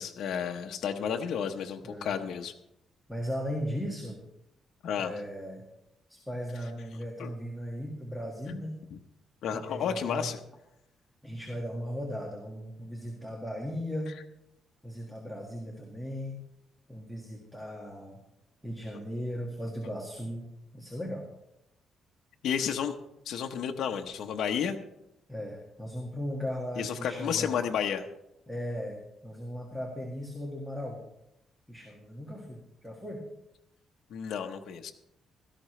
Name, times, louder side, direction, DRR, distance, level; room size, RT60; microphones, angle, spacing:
voice 1, 0.0-2.5 4.8-5.1 7.2-7.3 9.4-10.4 22.4-22.9 23.3-24.8 26.8-28.1 34.1-34.9, left 7 dB, 70° left, 4 dB, 0.9 m, -31 dB
voice 2, 3.1-4.2 5.0-5.6 6.1-8.8 9.5-10.3 11.2-14.2 14.8-16.4 16.9-18.2 18.6-21.3 25.3-27.7 28.5-31.0 31.7-33.2, equal, 5° right, -1 dB, 1.7 m, -37 dB
16.5 x 13.5 x 3.2 m, 0.86 s
cardioid pair, 150°, 0 cm